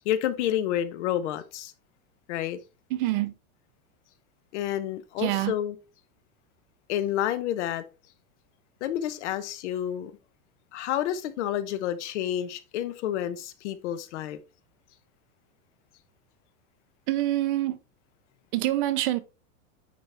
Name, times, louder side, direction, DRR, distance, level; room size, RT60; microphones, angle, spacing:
voice 1, 0.0-1.7 2.3-2.6 4.5-5.8 6.9-7.8 8.8-10.1 10.7-14.4, left 11 dB, 55° left, 1.0 m, -29 dB
voice 2, 2.9-3.3 5.2-5.5 17.1-17.8 18.5-19.2, right 15 dB, 35° right, 0.7 m, -26 dB
9.5 x 4.3 x 3.4 m
supercardioid pair, 165°, 43 cm